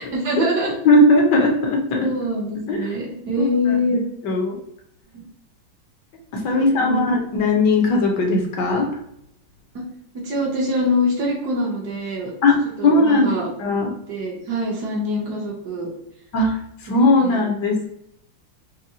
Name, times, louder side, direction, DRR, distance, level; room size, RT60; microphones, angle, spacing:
voice 1, 0.0-0.7 1.9-4.0 5.1-5.2 6.5-7.0 9.7-9.8 10.1-12.3 12.8-13.5 14.1-15.9 16.9-17.0 17.2-17.4, left 1 dB, 60° right, -1 dB, 1.3 m, -24 dB
voice 2, 0.8-2.1 2.7-2.9 3.4-4.0 4.2-4.6 6.3-8.9 12.4-12.6 12.8-13.3 13.6-13.9 16.3-16.6 16.8-17.9, left 2 dB, 65° left, 1 dB, 1.2 m, -18 dB
4.8 x 2.1 x 2.7 m, 0.75 s
omnidirectional pair, 2.3 m